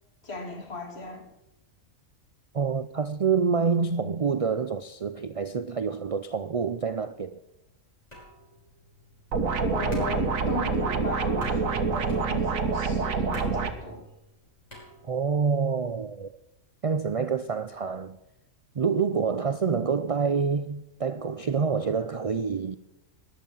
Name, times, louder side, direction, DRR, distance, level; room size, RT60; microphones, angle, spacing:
voice 1, 0.2-1.2 9.6-14.1, left 2 dB, 50° left, 2.7 m, -37 dB
voice 2, 2.5-7.4 15.0-16.3 16.8-18.2 18.7-22.8, right 5 dB, 55° right, 0.3 m, -27 dB
sound 1, 8.1-15.5, equal, 30° left, 5.9 m, -45 dB
sound 2, 9.3-13.7, right 4 dB, 85° right, 1.7 m, -26 dB
14.0 x 10.5 x 5.6 m
omnidirectional pair, 1.4 m